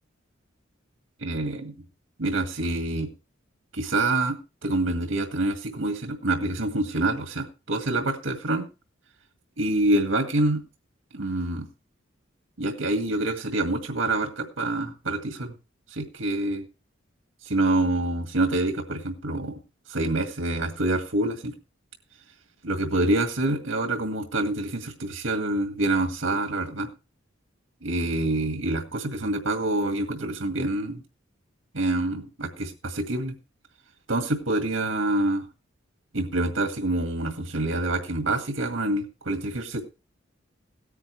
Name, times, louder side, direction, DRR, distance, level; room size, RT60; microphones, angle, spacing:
voice 1, 1.2-1.7 2.2-3.1 3.7-8.7 9.6-10.6 11.1-11.7 12.6-15.5 15.9-16.6 17.4-19.6 19.9-21.5 22.6-26.9 27.8-31.0 31.7-33.4 34.1-35.5 36.1-39.8, right 2 dB, 70° right, 5 dB, 1.9 m, -26 dB
17.0 x 9.5 x 3.2 m, 0.29 s
head